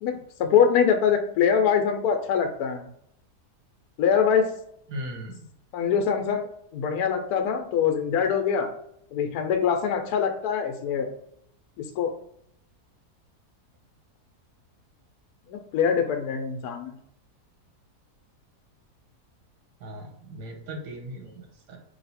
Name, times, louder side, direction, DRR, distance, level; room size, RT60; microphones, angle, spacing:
voice 1, 0.0-2.9 4.0-4.5 5.7-6.5 6.7-8.7 9.1-11.1 11.8-12.1 15.5-16.9, left 7 dB, 75° left, 5 dB, 1.1 m, -23 dB
voice 2, 4.9-5.4 19.8-21.8, equal, 90° right, 2 dB, 1.5 m, -38 dB
3.2 x 2.8 x 4.1 m, 0.71 s
omnidirectional pair, 1.7 m